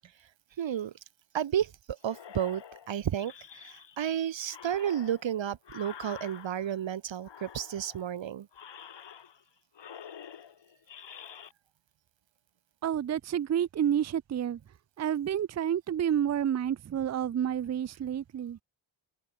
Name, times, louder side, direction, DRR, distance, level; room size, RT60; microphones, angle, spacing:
voice 1, 0.6-0.9 1.3-8.5, right 9 dB, 75° right, 1.2 m, -32 dB
sound 1, 2.0-4.1 4.5-6.9 7.2-8.1 8.5-9.5 9.7-11.5, left 8 dB, 65° left, 1.7 m, -48 dB
voice 2, 12.8-14.6 15.0-18.6, right 9 dB, 35° right, 0.5 m, -29 dB
wide cardioid pair, 105°, 46 cm